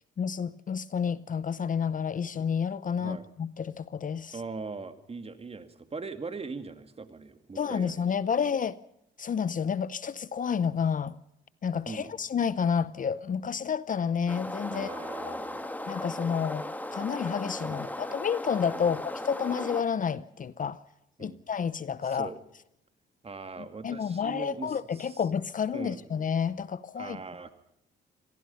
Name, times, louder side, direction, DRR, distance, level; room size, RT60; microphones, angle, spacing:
voice 1, 0.2-4.3 7.6-8.8 9.2-11.1 11.6-14.9 15.3-15.4 15.9-20.8 21.2-22.3 23.8-27.2, left 7 dB, 40° left, 0.7 m, -30 dB
voice 2, 4.3-8.1 11.9-12.2 14.7-15.7 17.7-17.9 18.8-19.0 21.2-21.4 22.0-22.4 23.2-25.3 25.7-26.0 27.0-27.5, right 4 dB, 30° right, 2.4 m, -41 dB
sound 1, 14.3-19.8, left 1 dB, 10° left, 2.1 m, -37 dB
26.0 x 18.5 x 5.7 m
cardioid pair, 90°, 20 cm